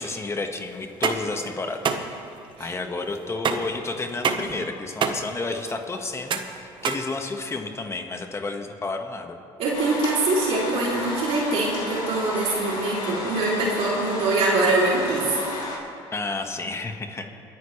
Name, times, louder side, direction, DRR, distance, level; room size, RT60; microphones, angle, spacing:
voice 1, 0.0-2.0 2.6-9.4 16.1-17.2, left 3 dB, 25° left, 4 dB, 1.6 m, -31 dB
sound 1, 0.8-7.7, right 6 dB, 50° right, 1.1 m, -29 dB
voice 2, 9.6-15.4, right 2 dB, 65° right, -5 dB, 3.3 m, -23 dB
sound 2, 9.7-15.8, left 2 dB, 50° left, 3.4 m, -32 dB
28.0 x 9.7 x 3.3 m, 2.5 s
supercardioid pair, 75°, 11 cm